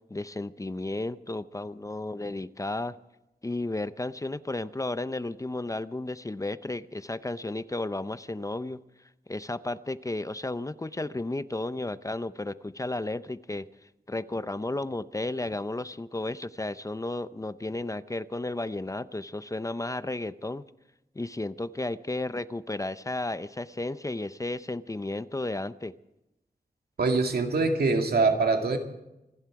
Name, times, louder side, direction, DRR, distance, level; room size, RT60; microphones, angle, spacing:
voice 1, 0.1-3.0 3.4-8.8 9.3-13.7 14.1-20.6 21.2-25.9, left 2 dB, 20° left, 14 dB, 0.6 m, -33 dB
voice 2, 27.0-28.8, right 3 dB, 90° right, 4 dB, 2.3 m, -24 dB
26.0 x 11.5 x 4.8 m, 0.91 s
wide cardioid pair, 100°, 16 cm